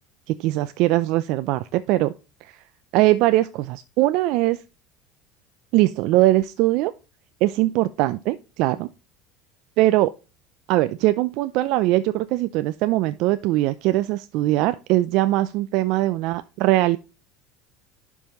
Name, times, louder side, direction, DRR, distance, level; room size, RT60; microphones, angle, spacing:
voice 1, 0.3-2.1 2.4-2.6 2.9-4.6 5.7-6.9 7.4-8.9 9.8-10.1 10.7-17.0, right 16 dB, 65° right, 0.4 m, -21 dB
11.0 x 5.4 x 3.0 m
supercardioid pair, 100°, 0 cm